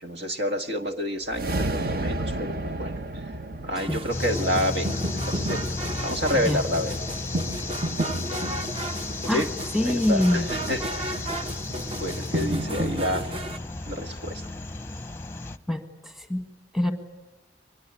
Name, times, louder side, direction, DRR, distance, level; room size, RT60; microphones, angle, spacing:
voice 1, 0.0-3.0 3.6-4.9 5.3-5.6 6.0-7.0 9.3-9.5 9.8-11.3 11.9-13.3 13.9-14.3, equal, 70° right, 6 dB, 1.8 m, -29 dB
sound 1, 1.2-5.6, right 2 dB, 55° right, 1.0 m, -32 dB
sound 2, 3.8-13.6, right 1 dB, 30° right, 1.1 m, -32 dB
sound 3, 4.1-15.6, left 3 dB, 15° left, 0.8 m, -33 dB
voice 2, 9.7-10.4 15.7-16.4 16.7-16.9, left 1 dB, ahead, 5 dB, 1.7 m, -24 dB
24.5 x 21.0 x 9.9 m, 1.1 s
head